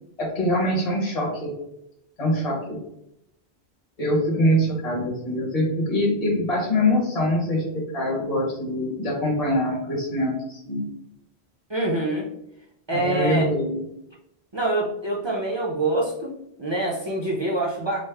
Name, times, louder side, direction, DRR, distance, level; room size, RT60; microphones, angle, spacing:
voice 1, 0.2-1.5 2.2-2.8 4.0-10.8 12.9-13.8, left 1 dB, 35° left, -4 dB, 1.0 m, -24 dB
voice 2, 11.7-12.3 12.9-13.5 14.5-18.0, right 2 dB, 30° right, -3 dB, 0.5 m, -25 dB
5.1 x 2.0 x 3.3 m, 0.79 s
omnidirectional pair, 1.1 m